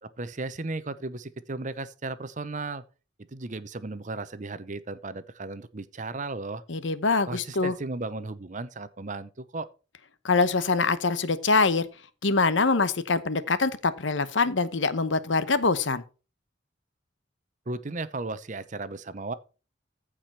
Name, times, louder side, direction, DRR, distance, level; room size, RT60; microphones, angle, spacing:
voice 1, 0.0-2.8 3.3-6.6 7.3-9.7 17.7-19.3, right 3 dB, 40° right, 0.8 m, -35 dB
voice 2, 6.7-7.7 10.2-11.9 12.2-16.0, left 4 dB, 70° left, 1.0 m, -24 dB
15.0 x 5.0 x 4.4 m
head